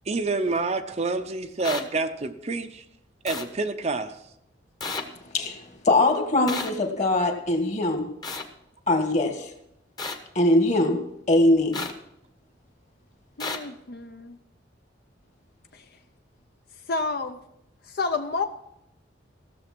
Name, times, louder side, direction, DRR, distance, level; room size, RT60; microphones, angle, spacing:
voice 1, 0.1-2.8 3.2-4.2, right 3 dB, 35° right, 0.6 m, -28 dB
sound 1, 1.6-1.8 3.3-3.4 4.8-5.0 6.5-6.7 8.2-8.4 10.0-10.2 11.7-11.9 13.4-13.6, left 3 dB, 20° left, 1.0 m, -31 dB
voice 2, 5.2-8.1 8.9-9.5 10.3-11.0 11.3-11.9, left 2 dB, 40° left, 1.7 m, -22 dB
voice 3, 13.4-14.4 15.7-15.8 16.9-17.4 17.9-18.4, left 3 dB, 55° left, 0.7 m, -29 dB
15.5 x 6.9 x 6.0 m
head